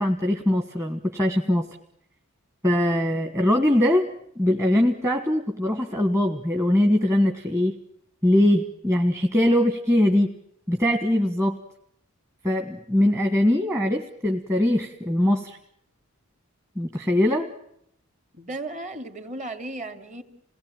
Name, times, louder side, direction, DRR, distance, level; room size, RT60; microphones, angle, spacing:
voice 1, 0.0-1.7 2.6-4.0 4.4-7.7 8.2-10.4 10.7-11.6 12.4-15.6 16.8-17.5, left 1 dB, 15° right, 4 dB, 1.5 m, -22 dB
voice 2, 18.3-20.2, right 2 dB, 35° right, 8 dB, 2.7 m, -35 dB
28.5 x 19.0 x 9.0 m, 0.74 s
head